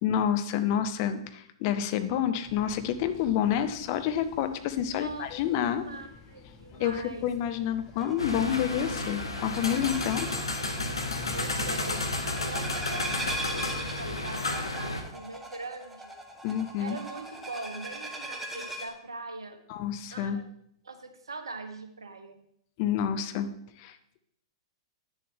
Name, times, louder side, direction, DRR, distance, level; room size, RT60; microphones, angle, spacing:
voice 1, 0.0-5.9 6.8-10.3 16.4-17.0 19.7-20.4 22.8-23.5 23.8-24.0, left 9 dB, 40° left, 10 dB, 0.7 m, -28 dB
wind turbine, 2.4-11.8, left 1 dB, 25° left, 1.7 m, -49 dB
voice 2, 4.9-5.3 5.9-7.3 11.3-12.0 12.5-16.2 16.8-19.6 20.1-20.4 20.8-22.4, right 3 dB, 75° right, 7 dB, 1.1 m, -41 dB
sound 1, 8.0-18.9, right 1 dB, 5° right, 1.3 m, -40 dB
sound 2, 8.2-15.0, left 2 dB, 75° left, 1.1 m, -32 dB
9.5 x 7.1 x 3.6 m, 0.70 s
figure-of-eight pair, 105°, 3 cm